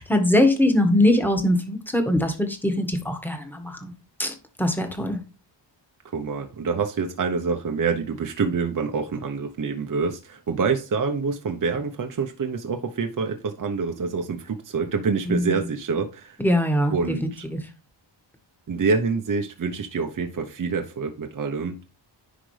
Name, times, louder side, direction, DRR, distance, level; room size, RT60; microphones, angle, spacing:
voice 1, 0.0-3.9 4.2-5.2 15.3-15.5 16.4-16.9, left 1 dB, 5° left, 4 dB, 1.8 m, -22 dB
voice 2, 6.1-16.4 16.9-17.5 18.7-21.8, right 5 dB, 45° right, 4 dB, 0.9 m, -26 dB
10.0 x 5.1 x 3.3 m, 0.32 s
wide cardioid pair, 100°, 45 cm